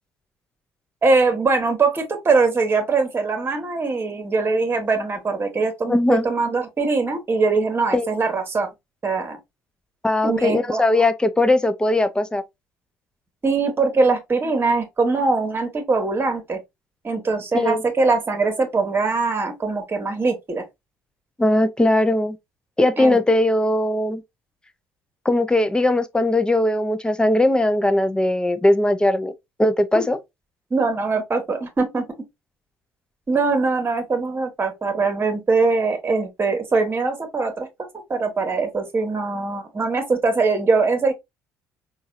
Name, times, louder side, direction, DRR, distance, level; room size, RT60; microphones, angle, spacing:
voice 1, 1.0-8.7 9.0-9.4 10.2-11.0 13.4-16.6 17.0-20.6 23.0-23.2 29.9-30.1 30.7-32.0 33.3-37.7 38.1-41.1, right 3 dB, 30° right, 1.3 m, -22 dB
voice 2, 5.9-6.3 7.9-8.1 10.0-12.4 17.5-17.8 21.4-22.4 22.8-24.2 25.3-29.3 29.6-30.2, left 1 dB, 10° left, 0.5 m, -19 dB
4.0 x 2.4 x 2.4 m
hypercardioid pair, 65°, 8 cm